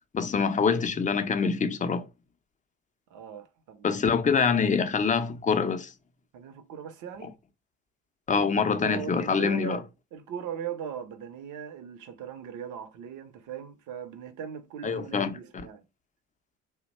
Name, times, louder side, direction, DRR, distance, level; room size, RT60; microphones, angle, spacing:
voice 1, 0.1-2.1 3.8-5.9 8.3-9.8 14.8-15.4, left 5 dB, 20° left, 0.6 m, -25 dB
voice 2, 3.1-4.0 6.3-7.3 8.3-9.8 10.1-15.8, right 8 dB, 55° right, 0.8 m, -39 dB
2.8 x 2.2 x 4.0 m
hypercardioid pair, 55°, 37 cm